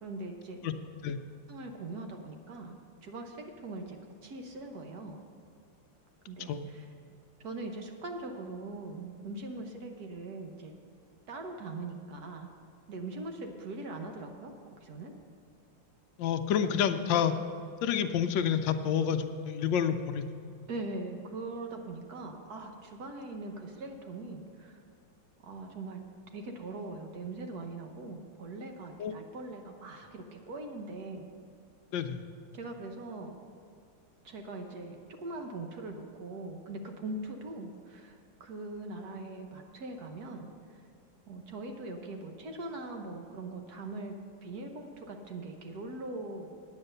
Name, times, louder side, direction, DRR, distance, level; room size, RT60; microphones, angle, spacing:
voice 1, 0.0-0.6 1.5-4.0 4.2-5.2 6.3-6.9 7.4-10.7 11.3-12.5 12.9-15.1 20.7-24.8 25.4-26.0 26.3-31.3 32.5-33.3 34.2-40.5 41.3-44.1 44.4-46.5, right 2 dB, 60° right, 3 dB, 1.3 m, -41 dB
voice 2, 16.2-17.3 17.8-20.6 29.0-29.1 31.9-32.2, left 8 dB, 75° left, 9 dB, 1.3 m, -29 dB
9.6 x 8.7 x 6.6 m, 2.3 s
omnidirectional pair, 2.1 m